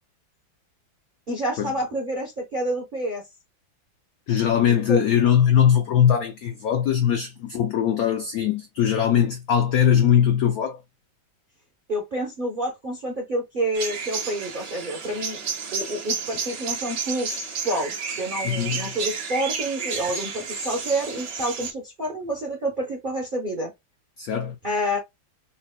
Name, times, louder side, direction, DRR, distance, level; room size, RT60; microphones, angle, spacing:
voice 1, 1.3-3.2 4.7-5.1 11.9-15.4 15.7-23.7 24.6-25.0, right 1 dB, 45° right, 0.6 m, -28 dB
voice 2, 4.3-10.8 18.4-18.9 24.2-24.6, left 9 dB, 80° left, 0.8 m, -21 dB
sound 1, 13.7-21.7, right 5 dB, 65° right, 1.7 m, -31 dB
5.6 x 2.1 x 2.2 m
omnidirectional pair, 2.1 m